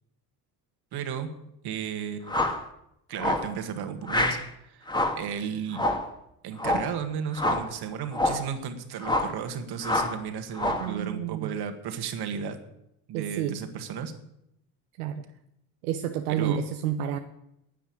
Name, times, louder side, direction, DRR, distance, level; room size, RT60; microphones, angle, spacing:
voice 1, 0.9-1.3 1.6-2.5 3.1-4.4 4.7-4.9 5.2-5.8 6.4-12.6 13.1-14.1 16.3-16.6, right 7 dB, 60° right, 8 dB, 1.9 m, -34 dB
sound 1, 2.3-2.6 3.2-3.5 4.1-4.5 4.9-5.3 5.7-6.1 6.6-6.9 7.4-7.7 8.1-8.5 9.0-9.4 9.8-10.2 10.6-10.9, left 1 dB, 10° left, 1.9 m, -27 dB
voice 2, 10.8-11.5 13.1-13.6 15.0-15.2 15.8-17.2, right 9 dB, 85° right, 6 dB, 0.9 m, -30 dB
10.0 x 9.3 x 8.6 m, 0.80 s
hypercardioid pair, 60°, 44 cm